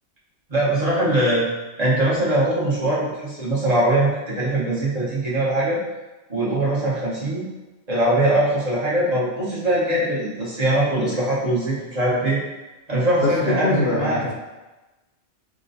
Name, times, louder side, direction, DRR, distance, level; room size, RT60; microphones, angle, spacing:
voice 1, 0.5-1.5 1.8-5.8 6.3-7.5 7.9-12.4 12.9-14.2, right 1 dB, 40° right, -8 dB, 0.9 m, -21 dB
voice 2, 13.2-14.3, left 3 dB, 65° left, -1 dB, 0.9 m, -23 dB
4.8 x 2.2 x 2.6 m, 1.1 s
omnidirectional pair, 1.2 m